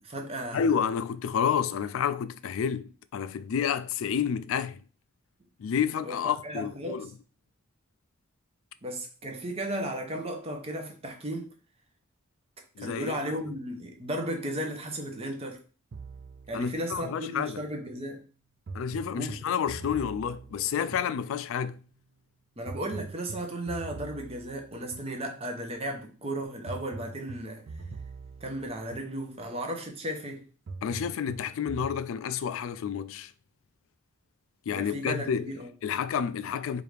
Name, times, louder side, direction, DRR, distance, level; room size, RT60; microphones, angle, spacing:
voice 1, 0.0-0.6 6.1-7.1 8.8-11.5 12.8-15.6 16.5-18.2 19.1-19.3 22.6-27.7 28.4-30.4 34.7-35.7, right 1 dB, 30° right, 0.7 m, -35 dB
voice 2, 0.5-4.8 5.6-7.1 12.8-13.4 16.5-17.6 18.7-21.8 30.8-33.3 34.7-35.5 35.8-36.8, left 7 dB, 65° left, 0.3 m, -30 dB
sound 1, 15.9-17.8 18.7-21.7 22.7-25.7 26.7-29.7 30.7-32.0, right 3 dB, 55° right, 0.4 m, -44 dB
4.8 x 2.5 x 3.3 m
head